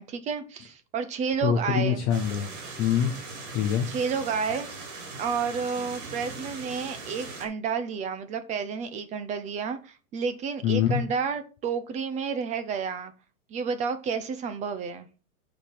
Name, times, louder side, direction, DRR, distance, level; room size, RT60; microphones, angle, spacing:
voice 1, 0.0-2.0 3.9-4.9 5.2-13.1 13.5-15.1, right 6 dB, 15° right, 11 dB, 0.8 m, -30 dB
voice 2, 1.4-2.5 2.8-3.1 3.5-3.9 10.6-11.0, left 8 dB, 10° left, 2 dB, 0.4 m, -24 dB
sound 1, 2.1-7.4, right 3 dB, 55° right, 4.5 m, -40 dB
8.6 x 5.0 x 6.1 m, 0.35 s
supercardioid pair, 155°, 42 cm